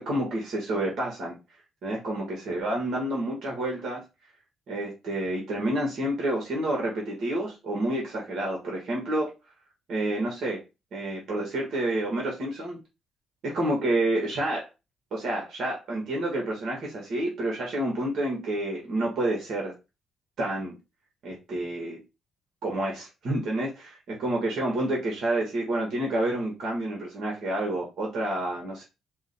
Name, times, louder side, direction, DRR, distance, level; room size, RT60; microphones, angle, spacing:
voice 1, 0.0-1.4 1.8-4.0 4.7-9.3 9.9-10.6 10.9-12.8 13.4-14.7 15.1-19.7 20.4-20.7 21.2-22.0 22.6-28.8, right 1 dB, 65° right, -1 dB, 1.4 m, -29 dB
4.7 x 2.2 x 4.2 m, 0.26 s
cardioid pair, 90°, 0 cm